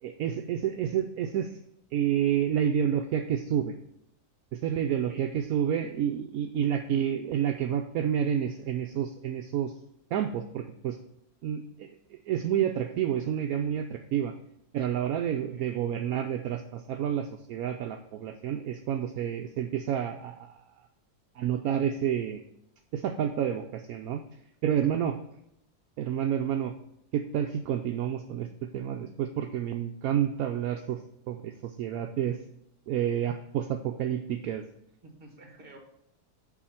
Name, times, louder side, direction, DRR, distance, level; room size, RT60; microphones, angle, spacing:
voice 1, 0.0-1.6 1.9-3.7 4.5-9.7 10.1-11.0 11.4-14.3 14.7-20.6 21.4-22.4 22.9-24.2 24.6-25.2 26.0-26.7 27.1-28.5 28.7-31.0 31.3-32.4 32.9-34.6, right 9 dB, 75° right, 5 dB, 1.0 m, -29 dB
voice 2, 15.5-15.9 24.7-25.0 25.3-25.4 35.0-35.8, right 1 dB, 35° right, 3 dB, 1.8 m, -51 dB
7.2 x 4.9 x 5.8 m, 0.78 s
omnidirectional pair, 1.6 m